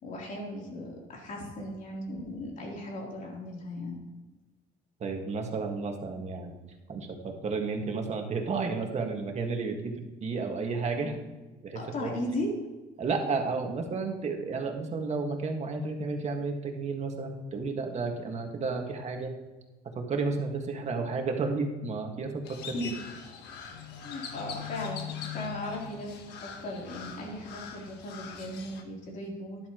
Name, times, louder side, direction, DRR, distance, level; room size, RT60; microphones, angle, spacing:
voice 1, 0.0-4.0 11.7-12.5 22.7-23.0 24.0-29.7, left 1 dB, 50° left, -2 dB, 3.6 m, -37 dB
voice 2, 5.0-6.5 6.9-9.9 10.2-11.2 11.6-12.1 13.0-19.3 20.0-22.7, right 4 dB, 40° right, 3 dB, 1.9 m, -32 dB
Crow, 22.4-28.8, left 7 dB, 80° left, 1.3 m, -42 dB
13.0 x 11.0 x 3.1 m, 1.2 s
cardioid pair, 110°, 17 cm